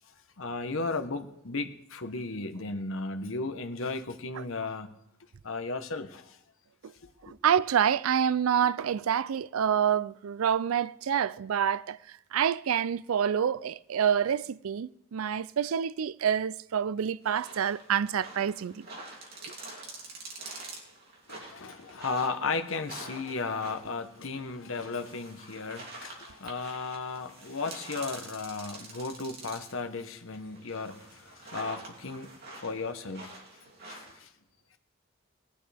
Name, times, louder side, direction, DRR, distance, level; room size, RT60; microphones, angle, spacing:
voice 1, 0.4-4.9 5.4-6.4 21.3-32.3 32.6-33.3 33.8-34.3, left 3 dB, 75° left, 1.1 m, -35 dB
voice 2, 7.2-12.0 12.3-18.9, right 8 dB, 90° right, 0.4 m, -27 dB
sound 1, 17.2-29.8 30.3-34.2, right 2 dB, 50° right, 2.9 m, -46 dB
18.5 x 11.5 x 3.4 m
head